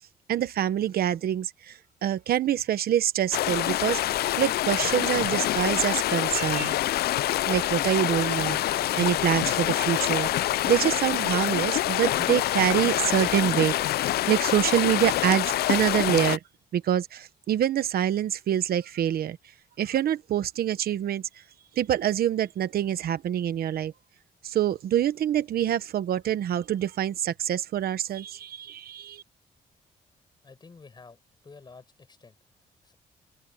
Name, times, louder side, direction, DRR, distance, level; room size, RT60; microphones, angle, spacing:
voice 1, 0.3-4.0 4.4-6.8 7.5-10.3 10.7-16.4 16.7-19.4 19.8-21.2 21.8-23.9 24.4-29.2, right 10 dB, 70° right, 1.1 m, -26 dB
sound 1, 3.3-16.4, left 14 dB, 80° left, 0.4 m, -26 dB
voice 2, 30.4-32.4 32.8-32.9, left 4 dB, 25° left, 6.3 m, -50 dB
open air
cardioid pair, 140°, 16 cm